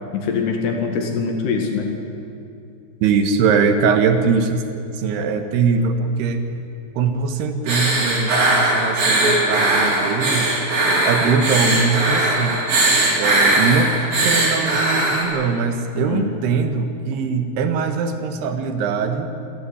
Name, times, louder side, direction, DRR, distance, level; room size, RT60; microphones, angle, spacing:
voice 1, 0.1-1.9 16.0-16.3, left 5 dB, 80° left, 3 dB, 4.1 m, -23 dB
voice 2, 3.0-4.6 4.9-6.4 7.0-10.5 11.0-12.7 13.2-13.9 14.2-19.3, right 5 dB, 80° right, 7 dB, 3.5 m, -21 dB
sound 1, 7.7-15.2, right 2 dB, 60° right, 5.9 m, -19 dB
28.5 x 12.0 x 9.9 m, 2.6 s
omnidirectional pair, 4.6 m